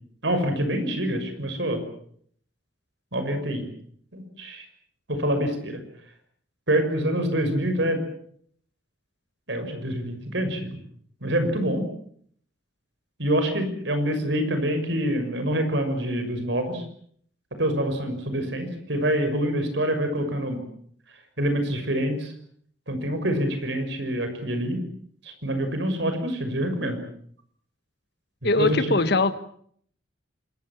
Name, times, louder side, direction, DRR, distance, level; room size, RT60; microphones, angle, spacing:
voice 1, 0.2-1.8 3.1-3.6 4.1-4.7 5.1-5.8 6.7-8.0 9.5-10.7 11.2-11.8 13.2-16.8 17.6-20.6 21.4-22.3 22.9-24.8 25.2-27.0 28.4-29.0, right 1 dB, 70° right, 7 dB, 6.3 m, -26 dB
voice 2, 28.4-29.3, left 2 dB, 60° left, 12 dB, 1.6 m, -21 dB
26.0 x 22.0 x 7.5 m, 0.63 s
head